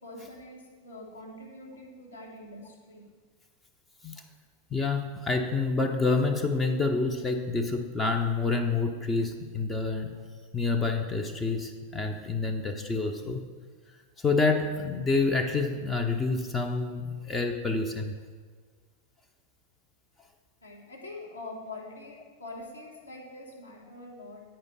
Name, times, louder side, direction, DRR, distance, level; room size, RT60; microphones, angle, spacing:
voice 1, 0.0-3.1 20.6-24.4, left 2 dB, 75° left, -2 dB, 1.5 m, -44 dB
voice 2, 4.7-10.2 10.5-13.4 14.2-18.1, left 3 dB, 15° left, 3 dB, 0.6 m, -28 dB
8.8 x 5.1 x 4.0 m, 1.5 s
figure-of-eight pair, 90°, 0 cm